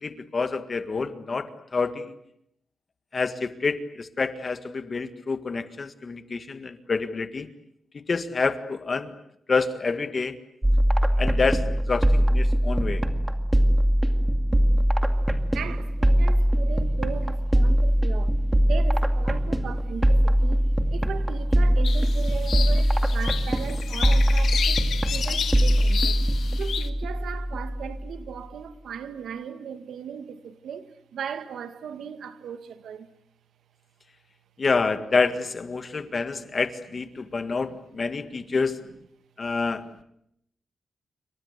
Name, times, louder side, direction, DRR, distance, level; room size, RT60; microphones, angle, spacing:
voice 1, 0.0-2.2 3.1-7.5 7.9-9.1 9.5-10.3 11.2-13.0 34.6-38.8 39.4-40.0, left 4 dB, 30° left, 1.8 m, -28 dB
sound 1, 10.6-28.2, equal, 10° right, 2.2 m, -22 dB
voice 2, 15.5-18.3 18.6-26.2 26.6-33.1 35.9-36.5 37.2-37.4 38.4-38.5 39.7-39.9, right 7 dB, 80° right, 2.0 m, -38 dB
sound 2, 21.8-26.9, left 7 dB, 65° left, 1.9 m, -31 dB
29.0 x 25.0 x 8.2 m
wide cardioid pair, 160°, 0 cm